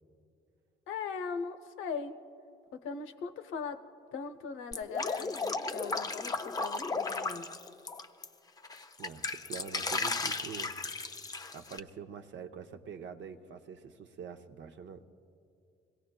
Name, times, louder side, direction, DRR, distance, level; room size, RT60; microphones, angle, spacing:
voice 1, 0.9-2.1 2.7-3.8 4.1-7.5, left 5 dB, 85° left, 8 dB, 0.7 m, -39 dB
Drip, 4.7-8.3 8.6-11.8, left 3 dB, 20° left, 0.5 m, -35 dB
voice 2, 9.0-10.7 11.5-15.0, right 6 dB, 65° right, 7 dB, 0.7 m, -45 dB
22.5 x 17.5 x 2.2 m, 2.5 s
cardioid pair, 90°, 20 cm